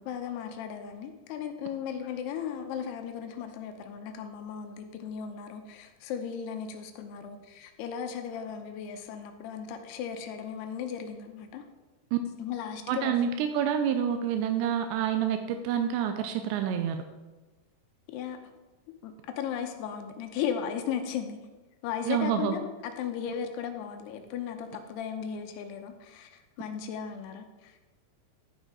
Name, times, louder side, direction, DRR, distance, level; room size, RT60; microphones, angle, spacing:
voice 1, 0.1-11.6 12.4-13.1 18.1-18.4 19.0-21.4 21.8-27.8, left 8 dB, 85° left, 6 dB, 2.8 m, -36 dB
voice 2, 12.9-17.0 22.1-22.5, right 9 dB, 90° right, 7 dB, 2.8 m, -28 dB
11.0 x 5.6 x 4.7 m, 1.2 s
omnidirectional pair, 4.8 m